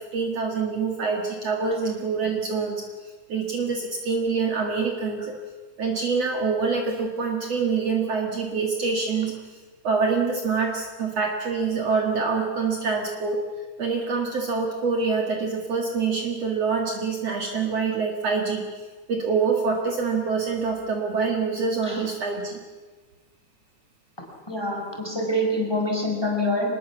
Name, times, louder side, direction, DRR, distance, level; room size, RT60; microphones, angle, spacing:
voice 1, 0.0-2.8 3.3-5.3 5.8-9.6 9.8-13.4 13.8-18.6 19.1-22.6, right 5 dB, 55° right, 2 dB, 2.8 m, -25 dB
voice 2, 24.5-26.7, left 1 dB, 5° left, 1 dB, 4.8 m, -25 dB
25.0 x 21.0 x 7.2 m, 1.3 s
omnidirectional pair, 3.7 m